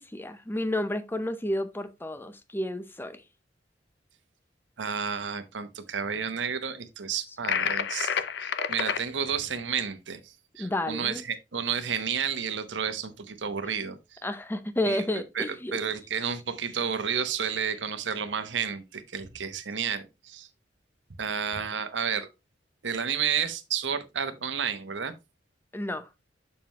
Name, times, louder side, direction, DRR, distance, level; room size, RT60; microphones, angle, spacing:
voice 1, 0.0-3.2 10.6-11.2 14.2-15.8 25.7-26.1, left 1 dB, 10° left, 0.7 m, -31 dB
voice 2, 4.8-8.1 8.4-14.2 14.9-15.0 15.3-15.4 15.7-20.5 21.2-22.3 22.8-25.1, right 7 dB, 75° right, 0.9 m, -31 dB
sound 1, 7.4-9.0, left 7 dB, 65° left, 0.6 m, -28 dB
7.2 x 6.0 x 3.0 m
head